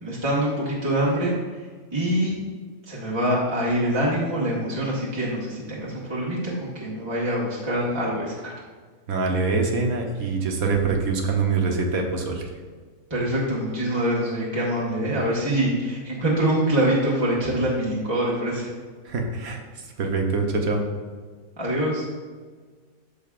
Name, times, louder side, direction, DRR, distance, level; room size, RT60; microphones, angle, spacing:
voice 1, 0.0-1.3 1.9-2.4 2.9-8.5 13.1-18.7 21.6-22.0, right 1 dB, 20° right, -6 dB, 1.4 m, -24 dB
voice 2, 9.1-12.5 19.0-19.6 20.0-20.8, right 4 dB, 80° right, 2 dB, 1.5 m, -24 dB
13.5 x 5.2 x 2.5 m, 1.5 s
omnidirectional pair, 1.5 m